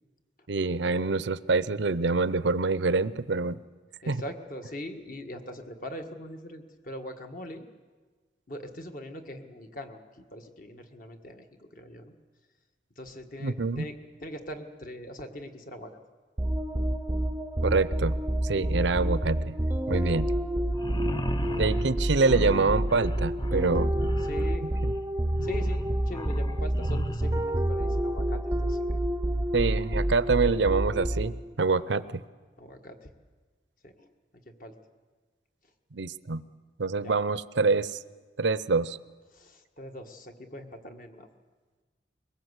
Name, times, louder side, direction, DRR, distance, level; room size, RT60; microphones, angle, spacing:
voice 1, 0.5-3.6 4.1-4.2 13.4-13.8 17.6-18.1 18.4-19.5 19.9-20.3 21.6-23.9 24.8-24.9 29.5-32.0 35.9-36.4 36.8-37.9 38.4-39.0, right 4 dB, 75° right, 16 dB, 0.7 m, -26 dB
voice 2, 4.0-7.7 8.5-12.1 13.0-16.0 18.7-18.9 19.9-20.3 21.4-21.8 24.2-24.7 25.4-28.9 31.7-32.0 32.6-33.1 33.8-34.1 34.4-34.7 37.0-37.1 39.3-41.3, equal, 45° left, 5 dB, 1.7 m, -42 dB
sound 1, 16.4-31.5, right 1 dB, 15° right, 0.6 m, -28 dB
sound 2, 20.7-27.5, left 1 dB, 25° left, 0.6 m, -37 dB
23.0 x 19.5 x 8.2 m, 1.4 s
head